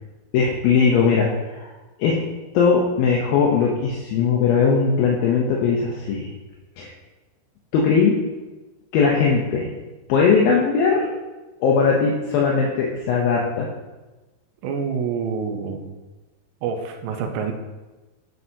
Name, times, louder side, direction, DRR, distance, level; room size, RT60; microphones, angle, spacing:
voice 1, 0.3-1.7 2.0-2.1 2.5-6.3 6.8-6.9 7.7-8.2 8.9-9.7 10.1-11.1 11.6-13.7, left 5 dB, 75° left, -2 dB, 2.2 m, -19 dB
voice 2, 14.6-15.9 16.6-17.5, right 6 dB, 80° right, 4 dB, 2.8 m, -27 dB
9.5 x 7.4 x 2.7 m, 1.2 s
omnidirectional pair, 4.9 m